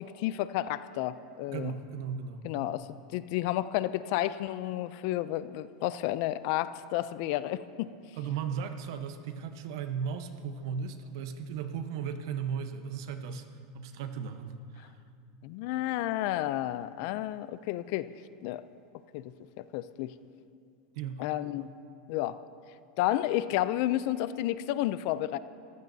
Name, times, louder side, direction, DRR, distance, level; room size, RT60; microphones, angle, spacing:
voice 1, 0.0-1.7 2.4-7.9 15.4-18.1 18.4-18.6 19.1-20.1 21.2-21.7 22.1-22.4 23.0-25.4, left 14 dB, 50° left, 15 dB, 0.4 m, -31 dB
voice 2, 1.5-2.4 8.2-13.5 13.7-15.0 20.9-21.3, right 7 dB, 65° right, 8 dB, 0.9 m, -36 dB
22.0 x 15.0 x 2.7 m, 2.3 s
supercardioid pair, 165°, 2 cm